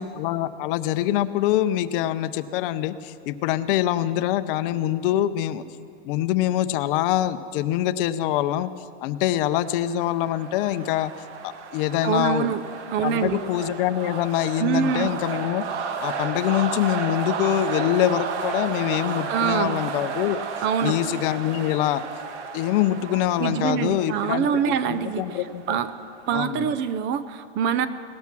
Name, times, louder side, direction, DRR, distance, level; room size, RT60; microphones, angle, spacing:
voice 1, 0.0-5.6 6.0-8.7 9.0-11.1 11.4-12.5 13.0-15.6 16.0-20.4 20.8-22.0 22.5-25.8 26.3-26.8, left 12 dB, 55° left, 13 dB, 0.7 m, -24 dB
sound 1, 9.6-26.3, right 6 dB, 90° right, 1.7 m, -33 dB
voice 2, 12.0-12.6 12.9-13.4 14.6-15.1 19.3-19.8 20.6-21.0 23.4-25.2 25.7-25.9 26.3-27.9, right 8 dB, 35° right, 13 dB, 0.6 m, -24 dB
18.0 x 13.0 x 6.1 m, 2.4 s
supercardioid pair, 145°, 34 cm